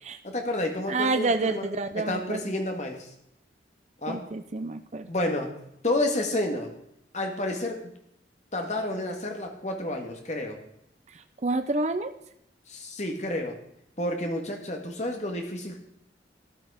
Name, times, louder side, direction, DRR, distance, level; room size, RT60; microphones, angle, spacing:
voice 1, 0.2-1.7 1.9-3.1 4.0-4.3 5.1-5.5 5.8-6.7 7.1-7.9 8.5-10.6 12.7-13.6 14.0-15.8, left 1 dB, 40° left, 3 dB, 2.0 m, -30 dB
voice 2, 0.9-2.5 4.1-5.1 11.1-12.1, right 3 dB, 40° right, 8 dB, 0.6 m, -29 dB
13.5 x 11.0 x 5.0 m, 0.76 s
head